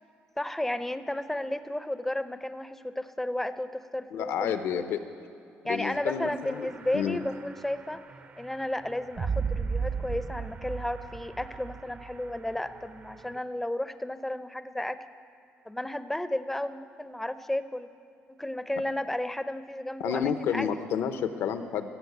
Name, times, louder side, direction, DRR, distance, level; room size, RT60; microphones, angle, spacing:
voice 1, 0.4-4.8 5.6-8.0 8.4-15.0 15.7-17.9 18.3-20.7, left 1 dB, 5° left, 12 dB, 0.5 m, -33 dB
voice 2, 4.1-5.0 5.6-7.2 20.0-21.9, left 8 dB, 80° left, 9 dB, 0.8 m, -30 dB
sound 1, 6.4-13.4, right 5 dB, 40° right, 0.6 m, -36 dB
15.5 x 6.4 x 8.0 m, 2.5 s
cardioid pair, 105°, 4 cm